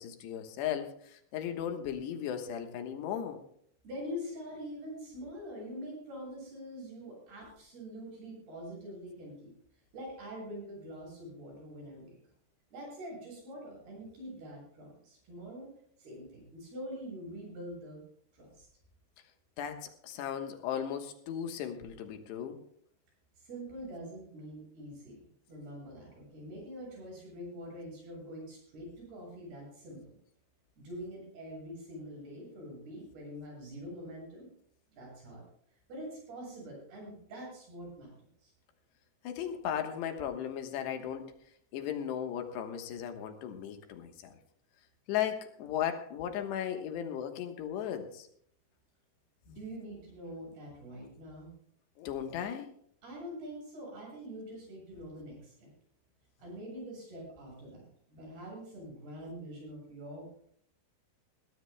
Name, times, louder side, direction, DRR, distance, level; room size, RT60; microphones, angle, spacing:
voice 1, 0.0-3.4 19.6-22.6 39.2-41.3 41.7-44.4 45.1-48.3 52.0-52.7, left 9 dB, 75° left, 6 dB, 3.3 m, -36 dB
voice 2, 3.8-9.5 9.9-12.1 12.7-15.7 16.0-18.0 18.3-18.7 23.4-25.2 25.5-30.2 30.8-34.5 34.9-35.4 35.9-38.5 49.5-51.5 53.0-55.7 56.4-60.5, equal, 60° right, -2 dB, 9.9 m, -45 dB
21.0 x 16.0 x 2.2 m, 0.64 s
omnidirectional pair, 5.1 m